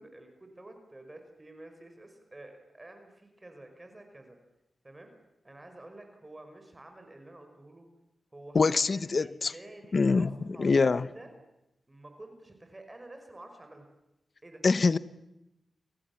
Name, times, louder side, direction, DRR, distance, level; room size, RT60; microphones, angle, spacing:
voice 1, 0.0-4.4 4.8-5.1 5.4-7.9 8.3-11.3 11.9-13.9 14.4-14.6, right 2 dB, 25° right, 5 dB, 5.4 m, -50 dB
voice 2, 8.5-9.5 9.9-10.3 10.6-11.1 14.6-15.0, left 4 dB, 55° left, 16 dB, 1.0 m, -24 dB
29.5 x 26.0 x 7.3 m, 0.89 s
cardioid pair, 50°, 0 cm